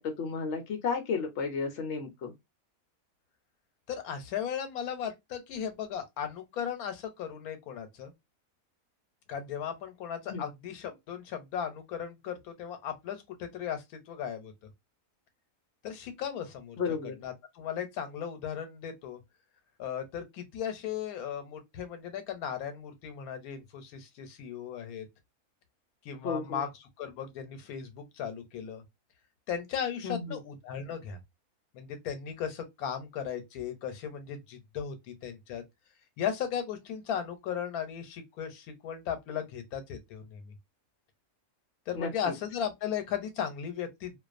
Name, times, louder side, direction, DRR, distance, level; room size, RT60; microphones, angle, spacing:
voice 1, 0.0-2.3 10.3-10.4 16.8-17.1 26.2-26.6 30.0-30.4 41.9-42.1, left 5 dB, 65° left, 0.8 m, -33 dB
voice 2, 3.9-8.1 9.3-14.5 15.8-19.2 19.8-25.0 26.0-28.8 29.5-31.2 31.7-35.6 36.2-40.5 41.9-44.2, left 8 dB, 85° left, 1.1 m, -36 dB
2.4 x 2.2 x 2.4 m
omnidirectional pair, 1.5 m